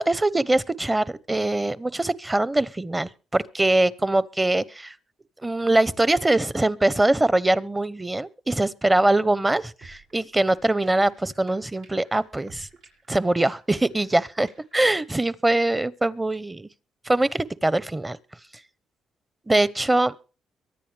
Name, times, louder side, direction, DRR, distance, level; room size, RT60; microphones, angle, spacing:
voice 1, 0.0-4.9 5.4-12.7 13.1-16.7 17.0-18.2 19.5-20.2, right 2 dB, 15° right, 0.9 m, -23 dB
sound 1, 9.8-15.1, right 4 dB, 80° right, 5.8 m, -52 dB
23.5 x 10.0 x 3.4 m
cardioid pair, 90°, 0 cm